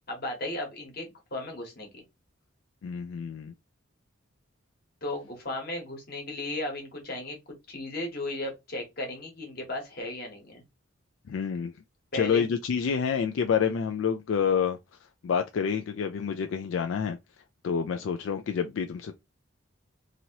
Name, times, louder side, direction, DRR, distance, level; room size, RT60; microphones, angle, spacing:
voice 1, 0.1-2.0 5.0-7.4 7.7-10.6 12.1-12.5, left 1 dB, 50° left, 1.2 m, -35 dB
voice 2, 2.8-3.5 11.3-11.7 12.1-14.8 15.2-17.2 17.6-19.1, left 7 dB, 70° left, 0.3 m, -28 dB
2.9 x 2.7 x 2.8 m
head